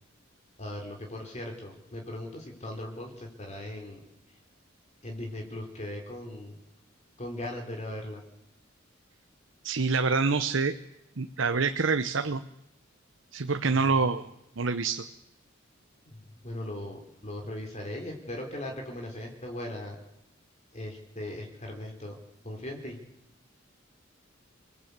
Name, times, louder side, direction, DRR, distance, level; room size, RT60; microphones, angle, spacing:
voice 1, 0.6-4.0 5.0-6.6 7.2-8.2 16.0-20.0 20.7-22.2 22.4-23.0, left 1 dB, 35° left, 2 dB, 3.6 m, -39 dB
voice 2, 9.6-10.7 11.2-12.4 13.3-14.3 14.6-15.0, right 4 dB, 75° right, 9 dB, 1.0 m, -26 dB
27.0 x 18.5 x 8.2 m, 0.88 s
head